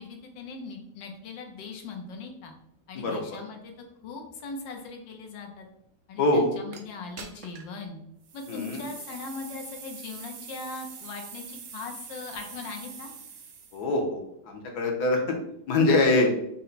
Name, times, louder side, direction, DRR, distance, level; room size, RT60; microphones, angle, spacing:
voice 1, 0.0-2.5 2.9-3.7 4.0-5.7 6.1-8.0 8.3-13.1, left 4 dB, 80° left, 3 dB, 1.5 m, -40 dB
voice 2, 6.2-6.5 8.5-8.8 13.7-15.4 15.7-16.3, left 2 dB, 65° left, 2 dB, 1.2 m, -24 dB
sound 1, 6.7-6.8 7.2-7.7 8.2-13.8, right 6 dB, 65° right, 0.9 m, -44 dB
5.6 x 2.1 x 3.9 m, 0.75 s
omnidirectional pair, 2.0 m